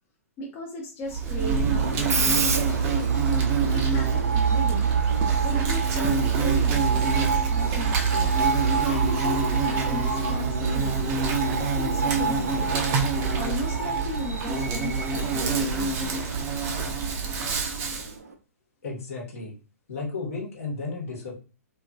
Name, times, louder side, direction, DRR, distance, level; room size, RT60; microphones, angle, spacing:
voice 1, 0.4-3.0 3.6-4.9 5.5-7.1 7.5-8.3 8.8-11.1 11.6-12.8 13.3-16.2, left 1 dB, 30° left, 0 dB, 0.6 m, -36 dB
Insect, 1.1-18.1, right 5 dB, 30° right, 0.5 m, -25 dB
Screech, 1.8-18.3, right 4 dB, 75° right, 0.5 m, -31 dB
sound 1, 6.8-10.6, right 2 dB, ahead, 0.9 m, -41 dB
voice 2, 18.8-19.5 19.9-21.4, left 3 dB, 65° left, -1 dB, 1.2 m, -33 dB
2.8 x 2.6 x 2.3 m, 0.33 s
figure-of-eight pair, 115°, 8 cm